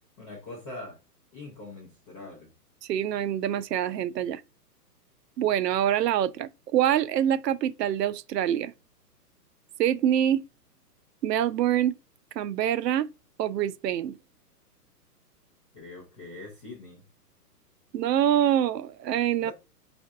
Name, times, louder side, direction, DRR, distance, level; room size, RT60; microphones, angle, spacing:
voice 1, 0.2-1.0 1.3-2.5 15.7-17.0 19.4-19.5, left 2 dB, 20° left, 0.7 m, -43 dB
voice 2, 2.9-4.4 5.4-8.7 9.8-10.4 11.2-12.0 12.4-13.1 13.4-14.2 17.9-19.5, right 10 dB, 90° right, 0.6 m, -25 dB
5.4 x 2.5 x 2.4 m
hypercardioid pair, 160°, 48 cm